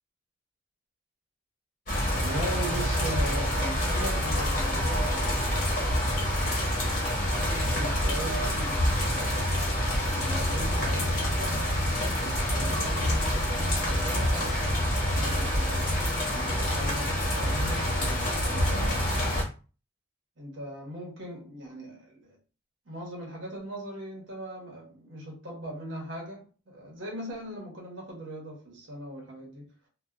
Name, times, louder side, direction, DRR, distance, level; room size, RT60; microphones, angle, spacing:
sound 1, 1.9-19.4, equal, 45° left, 1.0 m, -27 dB
voice 1, 2.2-5.4 7.4-9.6 10.2-11.6 12.2-14.8 15.1-19.1 20.4-22.4 22.8-29.7, right 1 dB, 85° right, 1.0 m, -39 dB
2.4 x 2.2 x 2.4 m
head